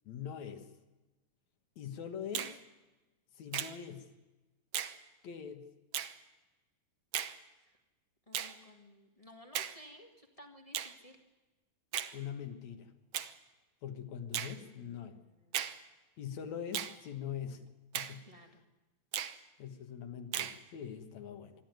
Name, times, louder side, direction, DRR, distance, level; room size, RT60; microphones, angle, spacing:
voice 1, 0.1-0.7 1.8-2.6 3.4-4.1 5.2-5.7 12.1-12.9 13.8-15.1 16.2-17.6 17.9-18.4 19.6-21.5, left 8 dB, 60° left, 7 dB, 2.5 m, -43 dB
Finger snapping, 2.3-2.6 3.5-3.8 4.7-5.0 5.9-6.1 7.1-7.4 8.3-8.6 9.5-9.8 10.7-10.9 11.9-12.1 13.1-13.3 14.3-14.6 15.5-15.8 16.7-17.0 17.9-18.2 19.1-19.4 20.3-20.6, right 10 dB, 70° right, 1.4 m, -36 dB
voice 2, 8.3-11.2 14.5-15.7 18.3-18.6, left 1 dB, 30° left, 3 dB, 0.6 m, -57 dB
27.0 x 11.5 x 9.2 m, 1.1 s
omnidirectional pair, 3.8 m